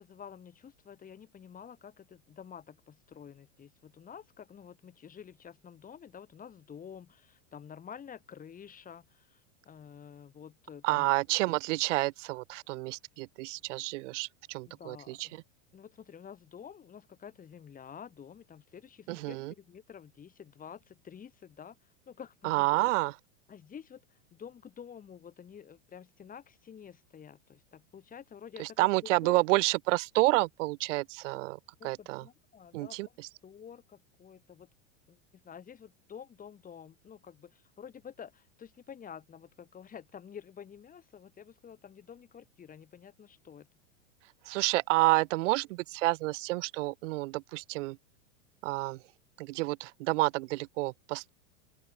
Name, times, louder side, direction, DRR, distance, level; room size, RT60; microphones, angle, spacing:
voice 1, 0.0-11.1 14.6-15.4 15.7-22.9 23.5-29.4 31.8-33.0 33.4-34.7 35.1-35.2 35.4-43.7, left 8 dB, 20° left, 3.0 m, -49 dB
voice 2, 10.8-15.3 19.1-19.5 22.4-23.2 28.6-32.2 32.7-33.3 44.5-48.0 48.6-49.0 49.4-51.3, right 21 dB, 65° right, 0.5 m, -29 dB
open air
supercardioid pair, 130°, 40 cm